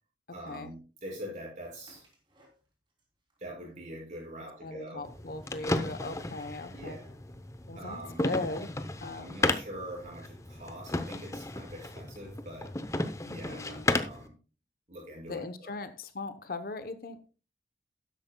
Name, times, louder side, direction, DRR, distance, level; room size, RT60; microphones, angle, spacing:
voice 1, 0.3-2.1 3.4-5.1 6.7-7.2 7.7-8.3 9.1-12.8 13.3-14.3 14.9-15.7, equal, 45° right, -2 dB, 6.2 m, -44 dB
sound 1, 1.6-3.0 3.3-4.0 4.7-7.1, equal, 25° right, 3.0 m, -60 dB
voice 2, 4.6-7.0 7.7-8.7 9.0-9.4 13.2-13.9 15.3-17.2, left 2 dB, 55° left, 11 dB, 0.8 m, -38 dB
sound 2, 5.0-14.3, left 2 dB, 15° left, 0.7 m, -34 dB
13.0 x 11.0 x 2.2 m, 0.34 s
head